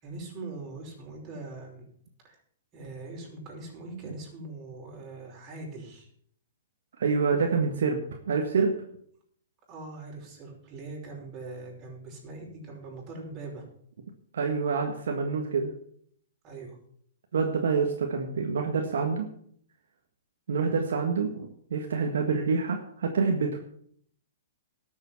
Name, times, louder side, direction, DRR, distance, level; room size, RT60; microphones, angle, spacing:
voice 1, 0.0-1.9 2.2-2.4 2.7-6.1 9.7-13.7 16.4-16.8 20.6-20.8, right 3 dB, 30° right, -2 dB, 5.5 m, -42 dB
voice 2, 7.0-8.0 8.3-8.8 14.3-15.7 17.3-19.3 20.5-23.6, right 5 dB, 75° right, 3 dB, 1.7 m, -27 dB
12.5 x 7.3 x 7.2 m, 0.64 s
hypercardioid pair, 135°, 0 cm